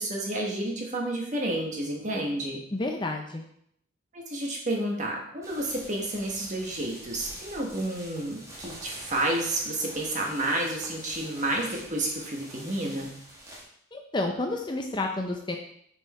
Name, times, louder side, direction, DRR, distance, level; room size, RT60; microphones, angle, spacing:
voice 1, 0.0-2.6 4.1-13.1, right 1 dB, 35° right, -1 dB, 1.4 m, -30 dB
voice 2, 2.7-3.4 13.9-15.6, left 2 dB, 20° left, 3 dB, 0.5 m, -30 dB
sound 1, 5.4-13.6, right 1 dB, 15° right, 1.3 m, -46 dB
6.5 x 4.7 x 4.3 m, 0.69 s
head